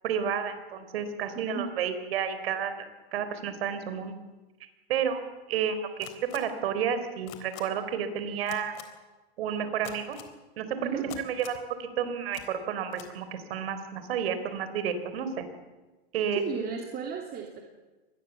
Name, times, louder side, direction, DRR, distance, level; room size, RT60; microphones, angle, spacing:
voice 1, 0.0-2.9 3.1-4.2 4.9-5.2 5.5-6.1 6.3-8.8 9.4-10.2 10.6-15.5 16.1-16.4, right 7 dB, 65° right, 10 dB, 3.9 m, -31 dB
voice 2, 1.3-1.7 10.8-11.1 16.3-17.6, right 7 dB, 30° right, 3 dB, 2.8 m, -34 dB
sound 1, 6.0-6.4 7.3-7.6 8.5-8.8 9.8-10.3 11.1-11.6 12.3-12.4 12.9-13.1, left 17 dB, 45° left, 3.6 m, -43 dB
25.0 x 20.0 x 7.2 m, 1.2 s
hypercardioid pair, 120°, 32 cm